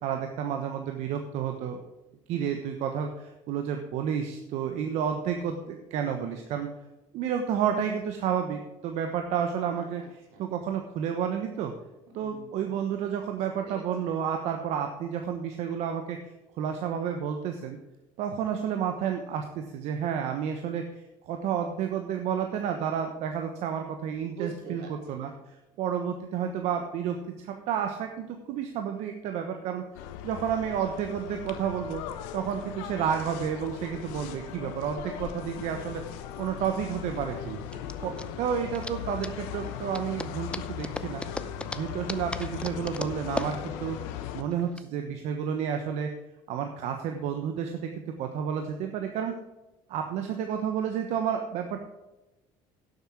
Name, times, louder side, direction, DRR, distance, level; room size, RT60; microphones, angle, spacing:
voice 1, 0.0-1.8 2.3-6.7 7.1-10.0 10.4-11.7 12.1-17.8 18.2-29.8 30.2-32.0 32.3-37.6 38.0-41.2 41.7-44.0 44.3-46.1 46.5-49.3 49.9-51.8, right 8 dB, 70° right, 5 dB, 1.2 m, -31 dB
voice 2, 9.7-10.5 12.2-12.7 13.4-14.1 24.3-25.4 37.2-38.5, right 3 dB, 85° right, 0 dB, 3.5 m, -46 dB
sound 1, 29.9-44.4, left 10 dB, 85° left, 1.0 m, -38 dB
sound 2, 35.9-44.8, left 2 dB, 10° left, 0.7 m, -39 dB
11.5 x 8.0 x 4.8 m, 1.0 s
supercardioid pair, 90°, 12 cm